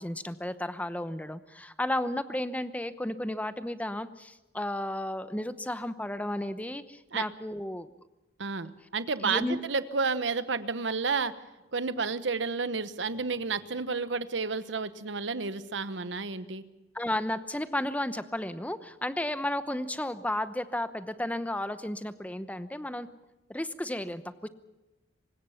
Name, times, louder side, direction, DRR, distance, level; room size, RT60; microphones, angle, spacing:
voice 1, 0.0-7.9 9.2-9.6 16.9-23.1 23.5-24.5, left 1 dB, 10° left, 12 dB, 0.9 m, -33 dB
voice 2, 8.4-11.3 11.7-16.6, right 4 dB, 70° right, 13 dB, 1.1 m, -31 dB
24.5 x 20.0 x 5.8 m, 1.1 s
head